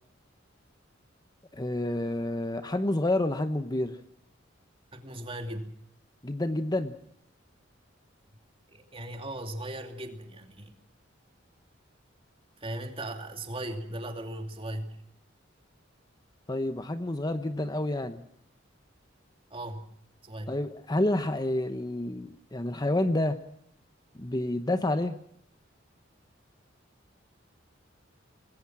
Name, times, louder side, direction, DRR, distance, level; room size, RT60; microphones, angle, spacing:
voice 1, 1.5-4.0 6.2-7.0 16.5-18.2 20.5-23.4 24.1-25.1, left 1 dB, 20° left, 10 dB, 1.0 m, -29 dB
voice 2, 4.9-5.7 8.7-10.8 12.6-15.0 19.5-19.9 20.2-20.5, right 1 dB, 30° right, 5 dB, 2.7 m, -38 dB
25.5 x 20.5 x 6.2 m, 0.70 s
head